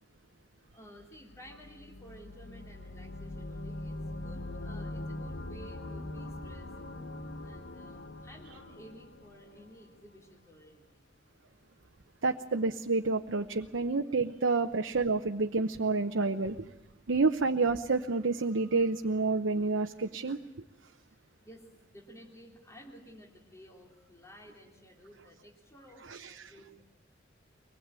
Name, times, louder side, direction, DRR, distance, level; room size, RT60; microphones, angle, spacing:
voice 1, 0.7-6.7 7.4-11.1 21.0-21.2 21.4-26.8, equal, 15° left, 0 dB, 3.3 m, -54 dB
sound 1, 1.1-10.0, left 1 dB, 90° left, 1.3 m, -42 dB
voice 2, 12.2-16.7 17.1-20.4 26.1-26.4, right 3 dB, 80° right, 4 dB, 0.9 m, -29 dB
23.5 x 20.0 x 9.0 m, 0.96 s
head